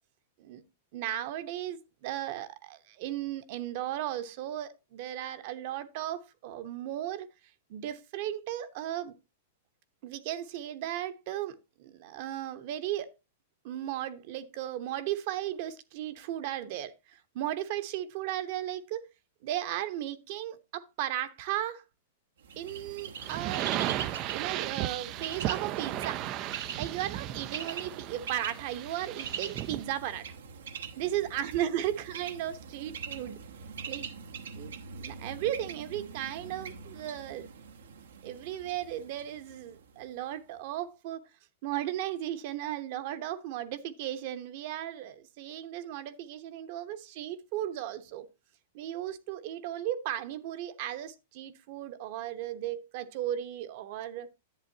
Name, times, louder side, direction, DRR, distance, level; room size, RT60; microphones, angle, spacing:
voice 1, 0.9-7.3 7.7-9.2 10.0-13.1 13.6-19.1 19.4-21.8 22.6-23.7 24.3-26.2 26.8-30.4 31.0-33.4 33.9-34.1 34.5-37.5 38.2-41.2 41.6-48.3 48.7-54.3, right 12 dB, 55° right, 1.0 m, -35 dB
Bird, 22.4-40.2, right 6 dB, 85° right, 1.1 m, -43 dB
sound 1, 23.2-29.9, right 14 dB, 40° right, 0.4 m, -35 dB
10.5 x 8.1 x 2.7 m
hypercardioid pair, 130°, 0 cm